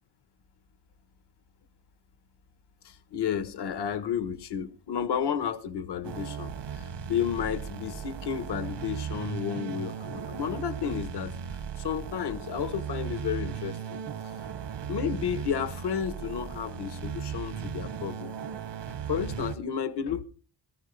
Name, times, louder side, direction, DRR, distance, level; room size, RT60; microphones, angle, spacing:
voice 1, 2.8-11.4 11.8-14.0 14.2-14.3 14.9-18.4 19.1-20.2, left 8 dB, 75° left, 1.3 m, -32 dB
sound 1, 6.0-19.6, right 7 dB, 85° right, 1.6 m, -37 dB
19.5 x 14.5 x 3.4 m
wide cardioid pair, 175°, 41 cm